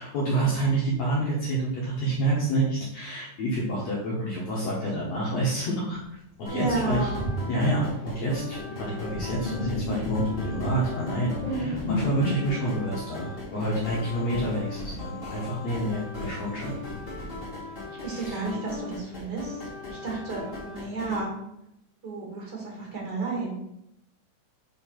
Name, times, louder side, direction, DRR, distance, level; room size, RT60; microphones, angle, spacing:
voice 1, 0.0-6.0 6.4-7.1 7.5-16.8 18.0-18.4, right 1 dB, 60° left, -5 dB, 2.1 m, -28 dB
Sink (filling or washing), 5.9-6.0 6.6-13.9, left 1 dB, 40° left, 0.7 m, -34 dB
sound 1, 6.4-21.2, left 3 dB, 20° left, 1.7 m, -39 dB
voice 2, 6.5-7.3 11.4-11.7 17.9-19.5 19.9-21.3 22.0-23.6, right 3 dB, 35° right, -3 dB, 2.6 m, -32 dB
5.4 x 4.4 x 5.7 m, 0.81 s
omnidirectional pair, 3.9 m